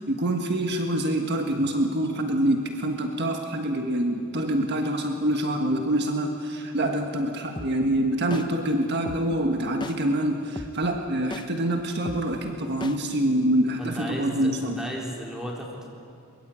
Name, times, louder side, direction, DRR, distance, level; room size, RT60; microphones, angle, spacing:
voice 1, 0.0-14.8, right 1 dB, 50° right, 3 dB, 1.5 m, -26 dB
sound 1, 7.6-7.7 8.3-8.4 9.1-9.2 9.8-9.9 10.6-10.7 11.3-11.4 12.1-12.2 12.8-12.9, left 1 dB, 20° left, 1.1 m, -35 dB
voice 2, 13.8-15.9, equal, 5° right, -2 dB, 3.9 m, -34 dB
22.5 x 22.5 x 8.7 m, 2.5 s
head